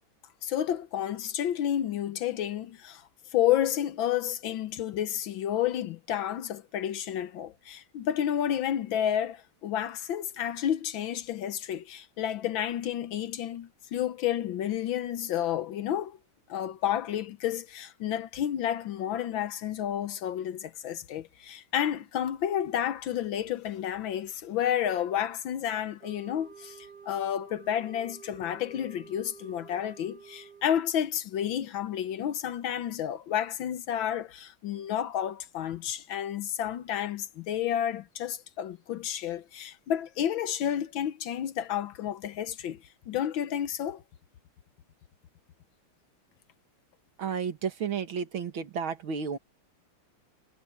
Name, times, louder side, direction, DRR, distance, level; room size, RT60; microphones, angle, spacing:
voice 1, 0.4-16.2 16.5-44.0, left 10 dB, 70° left, 1.5 m, -31 dB
sound 1, 26.0-30.9, right 6 dB, 50° right, 5.4 m, -50 dB
voice 2, 47.2-49.4, right 6 dB, 70° right, 2.4 m, -32 dB
omnidirectional pair, 2.4 m